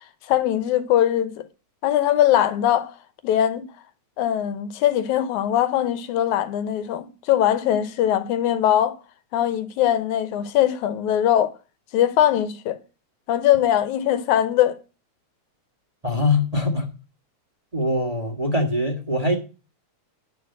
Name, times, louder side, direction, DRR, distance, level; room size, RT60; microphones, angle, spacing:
voice 1, 0.3-1.5 1.8-2.9 3.2-3.6 4.2-9.0 9.3-11.5 11.9-12.8 13.3-14.8, left 11 dB, 85° left, 2.3 m, -21 dB
voice 2, 16.0-16.9 17.7-19.4, left 2 dB, 35° right, 0.5 m, -22 dB
10.5 x 4.6 x 7.8 m
omnidirectional pair, 3.4 m